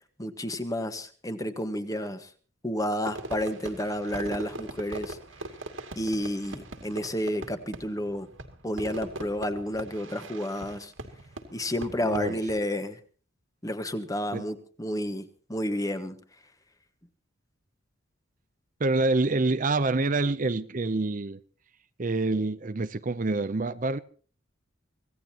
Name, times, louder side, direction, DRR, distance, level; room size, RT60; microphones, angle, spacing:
voice 1, 0.2-2.3 2.6-5.2 5.9-8.3 8.6-10.9 11.5-13.0 13.6-16.2, equal, 15° left, 1.5 m, -31 dB
Fireworks, 3.1-12.6, right 2 dB, 75° right, 2.5 m, -41 dB
voice 2, 12.0-12.4 14.3-14.4 18.8-21.4 22.0-24.0, right 3 dB, 40° right, 0.6 m, -26 dB
25.5 x 17.0 x 2.9 m
head